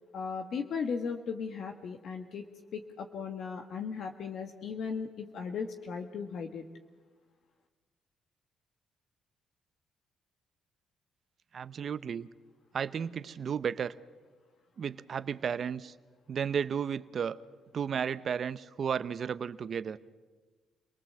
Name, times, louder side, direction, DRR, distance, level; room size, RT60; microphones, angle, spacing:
voice 1, 0.1-2.4 2.7-6.6, left 5 dB, 65° left, 5 dB, 1.4 m, -37 dB
voice 2, 11.5-12.3 12.7-13.9 14.8-15.9 16.3-17.4 17.7-20.0, right 7 dB, 50° right, 15 dB, 0.7 m, -33 dB
26.5 x 19.0 x 7.7 m, 1.3 s
cardioid pair, 90°, 0 cm